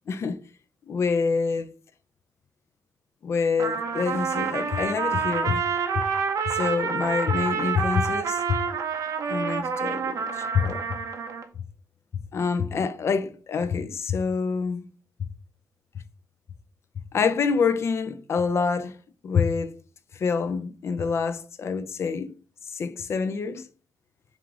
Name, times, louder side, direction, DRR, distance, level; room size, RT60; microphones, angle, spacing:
voice 1, 0.1-0.4 0.9-1.7 3.2-5.6 6.5-8.6 9.3-10.8 12.3-14.9 17.1-19.0 19.2-19.8 20.1-22.3 22.7-23.7, left 5 dB, 45° left, 0.4 m, -26 dB
Trumpet, 3.6-11.5, right 6 dB, 60° right, 0.5 m, -28 dB
4.6 x 2.4 x 3.6 m
wide cardioid pair, 155°, 6 cm